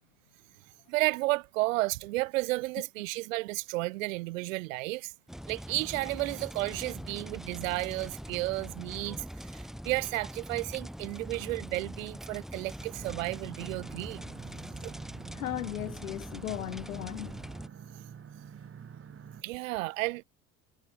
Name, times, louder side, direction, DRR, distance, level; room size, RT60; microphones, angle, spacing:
voice 1, 0.9-5.1 5.5-9.3 9.5-14.2 14.8-14.9 19.4-20.2, right 21 dB, 75° right, 1.0 m, -32 dB
sound 1, 5.3-17.7, equal, ahead, 3.8 m, -43 dB
sound 2, 12.8-19.4, right 7 dB, 35° right, 2.9 m, -48 dB
voice 2, 15.3-17.4, left 12 dB, 85° left, 0.9 m, -36 dB
hypercardioid pair, 65°, 40 cm